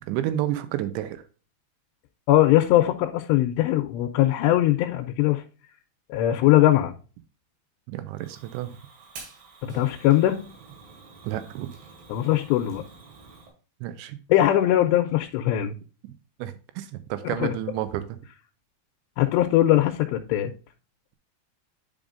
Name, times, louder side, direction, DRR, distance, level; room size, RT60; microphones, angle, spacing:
voice 1, 0.1-1.2 7.9-8.7 11.2-11.7 13.8-14.2 16.4-18.2, right 12 dB, 85° right, 3.1 m, -30 dB
voice 2, 2.3-5.4 6.1-6.9 9.6-10.4 12.1-12.8 14.3-15.8 17.2-17.5 19.2-20.5, left 14 dB, 80° left, 2.8 m, -21 dB
Fire, 8.2-13.5, right 4 dB, 70° right, 4.3 m, -48 dB
10.0 x 5.4 x 2.5 m
omnidirectional pair, 5.1 m